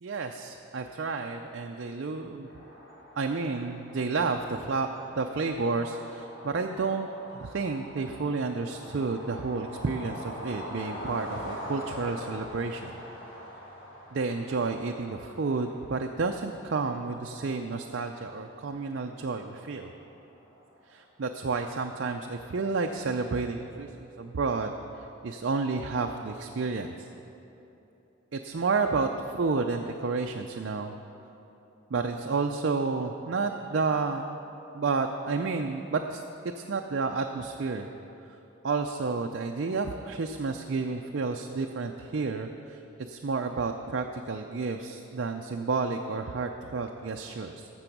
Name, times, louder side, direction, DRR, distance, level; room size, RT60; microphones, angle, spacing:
voice 1, 0.0-2.5 3.2-4.9 5.2-7.1 7.3-13.0 14.1-19.9 20.9-27.1 28.3-30.9 31.9-34.4 34.7-36.2 36.6-37.9 38.3-38.4 38.6-47.7, right 4 dB, 55° right, 3 dB, 0.4 m, -31 dB
sound 1, 2.4-21.0, equal, 70° left, 2.9 m, -44 dB
14.5 x 6.1 x 6.0 m, 2.9 s
head